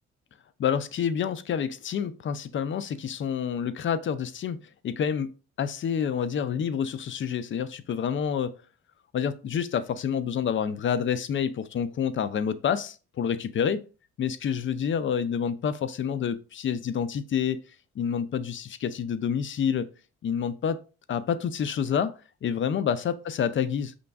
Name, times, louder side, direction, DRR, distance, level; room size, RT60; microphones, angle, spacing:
voice 1, 0.6-5.3 5.6-8.6 9.1-13.8 14.2-17.6 18.0-19.9 20.2-20.8 21.1-22.1 22.4-24.0, left 7 dB, 40° left, 0.4 m, -28 dB
5.2 x 3.3 x 2.3 m
cardioid pair, 90°, 30 cm